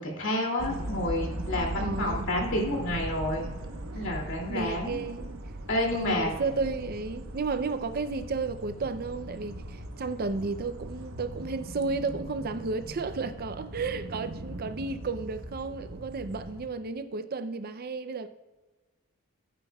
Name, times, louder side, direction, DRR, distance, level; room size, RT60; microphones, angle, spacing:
voice 1, 0.0-3.5 3.9-5.0 5.7-6.3, left 1 dB, 60° left, 2.6 m, -29 dB
sound 1, 0.6-16.7, right 1 dB, 70° right, 1.0 m, -39 dB
voice 2, 1.8-2.3 4.5-5.4 5.9-18.3, right 4 dB, 45° right, 0.5 m, -33 dB
16.0 x 9.1 x 2.3 m
head